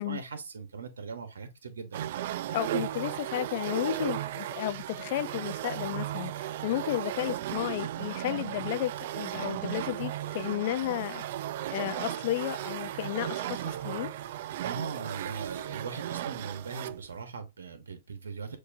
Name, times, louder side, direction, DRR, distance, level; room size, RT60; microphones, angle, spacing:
voice 1, 0.0-2.1 14.6-18.6, right 5 dB, 90° right, 1.1 m, -40 dB
sound 1, 1.9-17.1, right 12 dB, 60° right, 0.3 m, -35 dB
voice 2, 2.5-11.2 11.7-14.1, left 14 dB, 55° left, 0.5 m, -33 dB
6.6 x 2.7 x 2.6 m
hypercardioid pair, 130°, 0 cm